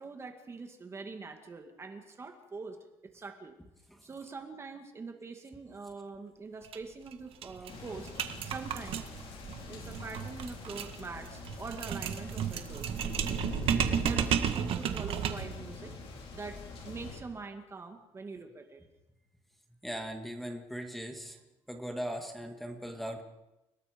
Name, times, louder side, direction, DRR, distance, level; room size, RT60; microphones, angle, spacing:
voice 1, 0.0-3.6 4.0-8.1 8.4-9.0 9.7-13.0 14.0-16.0 16.3-18.8, right 4 dB, 25° right, 5 dB, 2.2 m, -44 dB
sound 1, 6.6-6.8 7.1-7.2 7.4-15.6, right 9 dB, 55° right, 1.7 m, -33 dB
sound 2, 7.7-17.2, left 3 dB, 55° left, 5.5 m, -44 dB
voice 2, 19.8-21.4 21.7-23.2, equal, ahead, 4 dB, 2.2 m, -39 dB
29.5 x 19.0 x 5.3 m, 0.97 s
cardioid pair, 145°, 11 cm